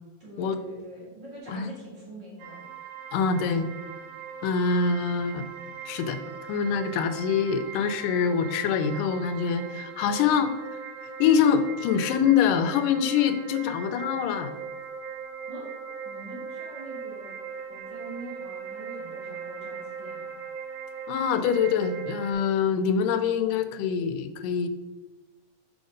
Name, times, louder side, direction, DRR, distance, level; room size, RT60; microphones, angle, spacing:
voice 1, 0.2-2.6 15.5-15.7 16.0-17.4 17.7-20.4, right 1 dB, 40° right, -6 dB, 2.4 m, -43 dB
sound 1, 2.4-22.3, right 6 dB, 90° right, 1.4 m, -39 dB
voice 2, 3.1-3.7 4.4-5.4 5.9-6.2 6.5-10.5 11.2-14.5 21.1-24.7, left 6 dB, 85° left, 9 dB, 2.2 m, -24 dB
6.5 x 5.0 x 5.2 m, 1.2 s
omnidirectional pair, 3.7 m